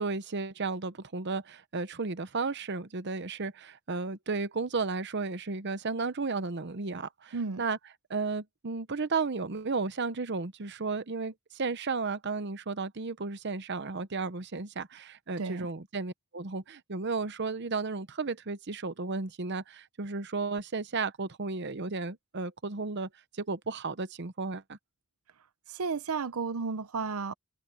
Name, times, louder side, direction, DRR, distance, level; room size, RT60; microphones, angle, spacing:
voice 1, 0.0-7.8 8.1-24.8, right 4 dB, 55° right, 0.9 m, -34 dB
voice 2, 25.7-27.3, right 4 dB, 90° right, 0.7 m, -33 dB
open air
head